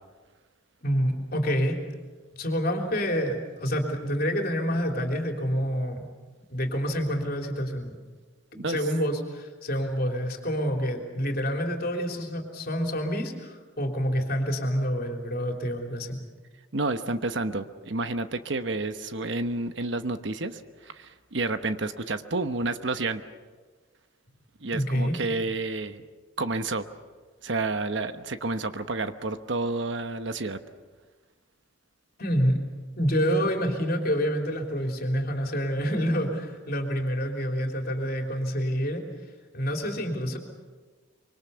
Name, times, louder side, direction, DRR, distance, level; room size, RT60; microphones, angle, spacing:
voice 1, 0.8-2.0 2.4-6.1 6.5-7.9 8.7-16.2 24.7-25.1 32.2-32.6 33.0-39.0 39.5-40.4, equal, 45° left, 3 dB, 3.4 m, -27 dB
voice 2, 16.7-23.2 24.6-26.0 26.4-26.9 27.4-30.6, right 3 dB, 60° right, 10 dB, 1.1 m, -30 dB
25.0 x 24.0 x 6.9 m, 1.4 s
head